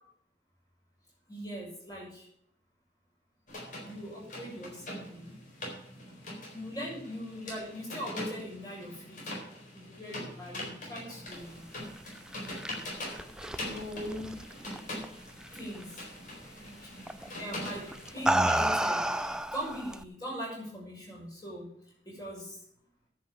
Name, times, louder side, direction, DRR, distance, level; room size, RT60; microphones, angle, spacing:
voice 1, 1.3-2.3 3.8-5.3 6.5-9.2 9.7-11.6 13.6-14.4 15.5-16.0 16.6-17.9 18.1-19.0 19.5-21.7 22.0-22.6, equal, 20° left, -5 dB, 5.9 m, -40 dB
sound 1, 3.5-19.3, left 1 dB, 50° left, 4.0 m, -43 dB
sound 2, 12.2-15.0 15.4-15.8 17.1-17.3 17.9-20.0, right 1 dB, 5° right, 0.3 m, -30 dB
10.0 x 6.6 x 8.6 m, 0.69 s
head